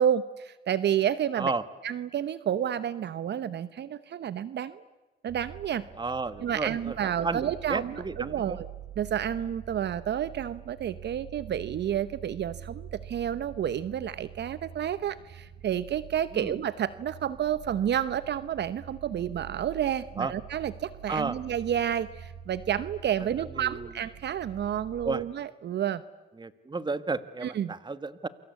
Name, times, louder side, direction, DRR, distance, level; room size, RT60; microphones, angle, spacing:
voice 1, 0.0-1.5 1.8-4.8 5.2-5.8 6.4-8.7 9.0-26.0 27.4-27.7, right 9 dB, 60° right, 15 dB, 1.0 m, -30 dB
sound 1, 5.3-25.2, right 10 dB, 85° right, 3.0 m, -46 dB
voice 2, 6.0-8.6 16.3-16.5 20.2-20.3 21.1-21.4 23.5-23.9 25.0-25.2 26.4-28.3, right 3 dB, 20° right, 14 dB, 1.6 m, -32 dB
28.5 x 24.0 x 8.4 m, 1.1 s
cardioid pair, 90°, 20 cm